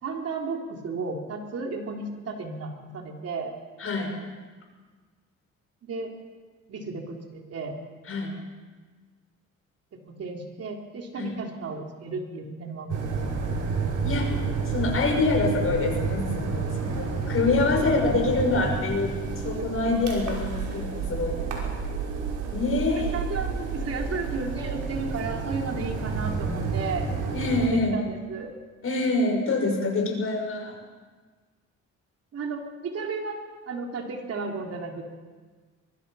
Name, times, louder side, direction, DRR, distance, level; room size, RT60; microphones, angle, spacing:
voice 1, 0.0-3.5 5.8-6.1 6.7-7.8 9.9-13.0 16.8-17.0 23.0-27.1 27.7-28.6 32.3-35.1, right 4 dB, 55° right, 1 dB, 3.6 m, -34 dB
voice 2, 3.8-4.1 8.1-8.4 11.2-11.3 14.0-14.3 14.7-19.2 19.4-21.5 22.5-23.1 27.3-28.0 28.8-30.7, left 3 dB, 45° left, 2 dB, 6.1 m, -26 dB
sound 1, 12.9-27.7, right 4 dB, 80° right, 5.8 m, -30 dB
23.5 x 22.5 x 5.7 m, 1.4 s
cardioid pair, 100°, 29 cm